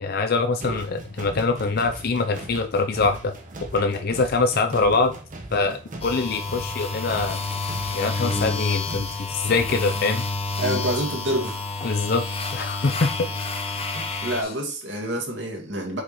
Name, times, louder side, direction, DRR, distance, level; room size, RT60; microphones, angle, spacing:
voice 1, 0.0-3.3 3.7-5.1 5.5-7.4 7.9-10.2 11.8-12.2 12.5-13.4 14.4-14.5, left 3 dB, 55° left, 0.5 m, -24 dB
sound 1, 0.6-10.0, right 1 dB, 40° right, 1.1 m, -39 dB
sound 2, 6.0-14.4, left 3 dB, 30° left, 0.8 m, -29 dB
voice 2, 10.6-11.6 13.7-16.0, right 1 dB, 70° right, 2.2 m, -28 dB
7.1 x 4.8 x 3.1 m
head